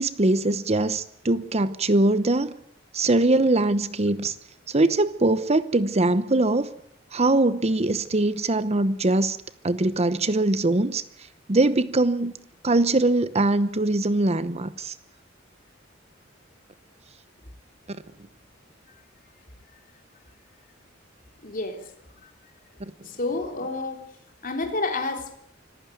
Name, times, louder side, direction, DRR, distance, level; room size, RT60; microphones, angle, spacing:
voice 1, 0.0-2.5 2.9-4.3 4.7-6.7 7.1-9.4 9.6-11.0 11.5-12.3 12.6-14.9 17.9-18.0 22.8-22.9, right 2 dB, 35° right, 14 dB, 0.9 m, -22 dB
voice 2, 21.4-21.8 22.2-22.3 23.0-24.0 24.4-25.4, left 3 dB, 45° left, 5 dB, 3.6 m, -29 dB
25.5 x 15.0 x 9.3 m, 0.69 s
head